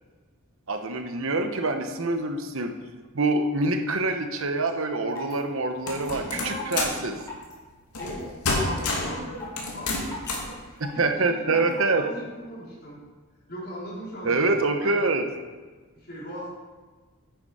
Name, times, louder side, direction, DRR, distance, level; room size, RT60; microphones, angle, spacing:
voice 1, 0.7-2.7 3.1-7.1 11.0-12.0 14.2-15.2, right 3 dB, 60° right, 6 dB, 1.1 m, -25 dB
sound 1, 4.7-4.8 5.1-5.4 5.9-6.1 6.5-6.8 7.2-7.5 8.0-8.2 8.6-8.9 9.4-9.6 10.1-10.3 10.8-11.0 11.5-11.7, left 3 dB, 15° left, 3.0 m, -38 dB
sound 2, 5.9-7.0 7.9-8.2 8.4-9.2 9.6-10.5, left 3 dB, 85° left, 2.5 m, -28 dB
voice 2, 6.2-7.0 8.0-13.0 13.5-15.2 15.9-16.5, equal, 45° left, -6 dB, 4.1 m, -39 dB
9.8 x 9.4 x 5.0 m, 1.4 s
head